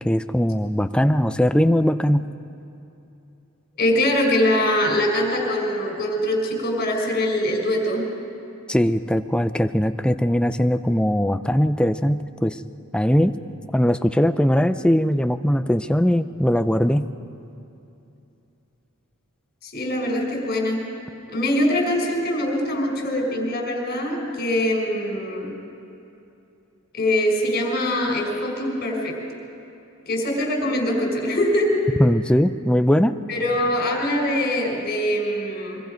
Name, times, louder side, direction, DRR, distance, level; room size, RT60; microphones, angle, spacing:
voice 1, 0.0-2.3 8.7-12.6 12.9-13.3 13.7-17.1 32.0-33.2, equal, 5° left, 10 dB, 0.5 m, -20 dB
voice 2, 3.8-8.0 19.6-20.8 21.3-25.5 26.9-29.1 30.1-31.8 33.3-35.8, left 1 dB, 45° left, 1 dB, 4.7 m, -23 dB
24.5 x 23.5 x 5.2 m, 2.8 s
head